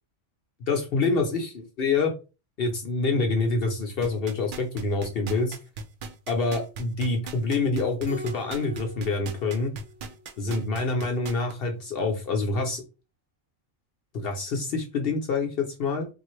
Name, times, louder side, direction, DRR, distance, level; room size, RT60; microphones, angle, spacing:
voice 1, 0.6-2.1 2.6-5.6 6.3-9.7 10.4-12.8 14.1-16.1, left 3 dB, 60° left, 3 dB, 0.8 m, -26 dB
sound 1, 4.0-11.5 12.0-12.1, right 4 dB, 60° right, 0.6 m, -37 dB
Keyboard (musical), 8.1-10.7, left 1 dB, 10° right, 0.8 m, -44 dB
3.6 x 2.4 x 3.0 m, 0.31 s
omnidirectional pair, 1.2 m